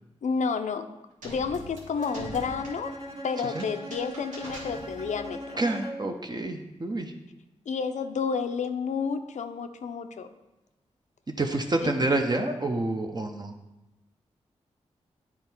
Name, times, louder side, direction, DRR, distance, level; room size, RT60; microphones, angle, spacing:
voice 1, 0.2-0.9 1.2-3.0 3.2-5.6 7.7-10.3 11.8-11.9, left 5 dB, 75° left, 8 dB, 0.5 m, -30 dB
sound 1, 1.2-5.3, right 1 dB, 90° right, 1.3 m, -44 dB
Bowed string instrument, 2.0-6.2, right 1 dB, 50° right, 1.3 m, -39 dB
voice 2, 5.6-7.1 11.4-13.5, right 2 dB, 35° right, 4 dB, 0.6 m, -28 dB
8.7 x 3.5 x 4.3 m, 1.0 s
cardioid pair, 40°, 12 cm